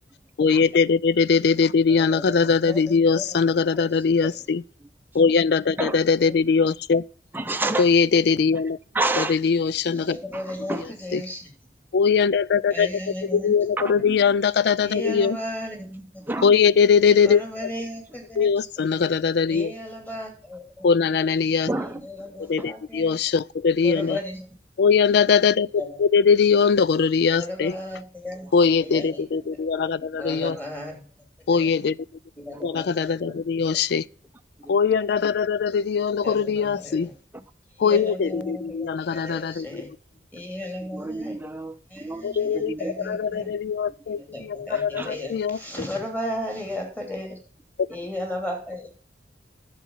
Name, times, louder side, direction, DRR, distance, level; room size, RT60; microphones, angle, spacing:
voice 1, 0.4-4.6 5.1-7.0 7.8-8.8 9.2-10.2 11.1-11.2 11.9-12.9 13.3-15.4 16.4-17.4 18.4-19.7 20.8-21.7 22.5-24.2 24.8-25.7 26.0-27.7 28.5-30.6 31.5-32.0 32.6-34.0 34.7-37.1 37.8-39.7 42.2-42.7 43.1-45.6, left 5 dB, 60° left, 0.4 m, -21 dB
voice 2, 1.9-3.4 3.8-4.3 6.2-6.3 9.8-11.5 12.7-13.6 14.0-14.1 14.8-16.2 17.2-18.8 19.5-20.9 22.0-23.2 23.8-24.5 25.8-26.0 27.3-28.5 28.8-29.2 30.2-31.0 31.5-31.7 32.4-33.4 36.2-37.1 37.7-39.9 40.3-41.4 41.9-43.5 44.1-47.4 47.9-48.9, left 1 dB, 10° left, 2.9 m, -35 dB
voice 3, 7.3-7.9 8.9-9.4 10.3-10.9 13.8-14.2 16.2-16.6 21.7-22.7 32.5-33.0 34.6-35.0 37.3-37.4 39.1-39.3 40.8-43.0 44.2-44.3 44.7-45.2 47.9-48.0, right 2 dB, 10° right, 0.6 m, -31 dB
10.5 x 7.0 x 5.5 m
head